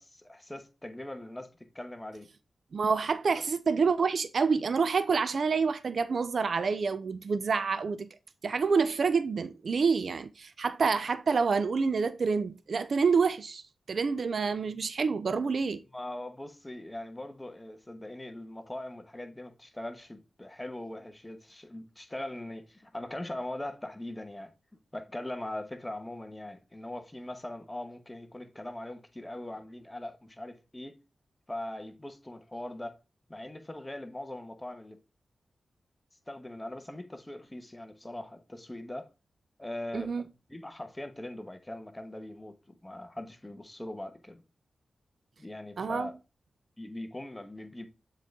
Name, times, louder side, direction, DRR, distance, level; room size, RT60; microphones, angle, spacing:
voice 1, 0.0-1.5 1.7-2.3 3.3-3.4 15.9-30.9 31.5-33.0 33.3-35.0 36.3-39.1 39.6-40.1 40.5-42.5 42.8-44.4 45.4-46.1 46.8-47.9, left 1 dB, 15° left, 1.1 m, -41 dB
voice 2, 2.7-8.1 8.4-15.8 39.9-40.2 45.8-46.1, right 5 dB, 65° right, 0.4 m, -28 dB
7.3 x 3.9 x 3.6 m
cardioid pair, 65°, 0 cm